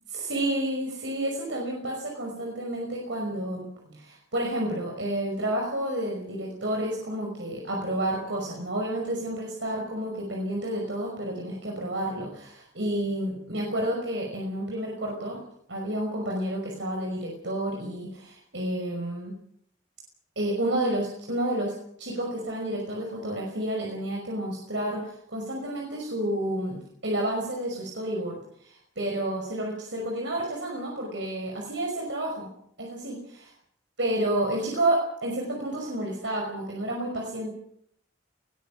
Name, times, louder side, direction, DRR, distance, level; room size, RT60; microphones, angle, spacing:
voice 1, 0.1-15.4 15.7-19.3 20.4-21.7 22.0-32.5 32.8-33.5 34.0-37.5, right 1 dB, 70° right, 0 dB, 5.7 m, -30 dB
21.5 x 19.0 x 7.5 m, 0.67 s
head